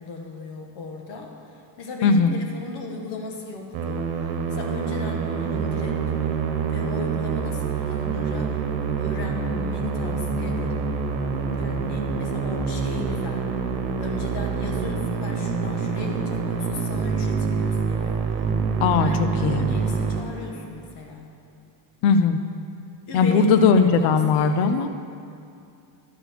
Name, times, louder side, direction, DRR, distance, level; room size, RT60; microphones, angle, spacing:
voice 1, 0.0-6.0 6.7-8.5 9.0-11.2 11.5-13.5 14.0-18.2 18.8-21.3 23.1-24.9, left 3 dB, 55° left, 2 dB, 1.5 m, -36 dB
voice 2, 2.0-2.4 18.8-19.1 19.4-19.7 22.0-22.4 23.1-24.9, left 5 dB, 80° left, 9 dB, 0.8 m, -18 dB
Musical instrument, 3.7-20.9, right 5 dB, 65° right, 1.1 m, -26 dB
11.0 x 5.0 x 6.6 m, 2.5 s
cardioid pair, 160°, 49 cm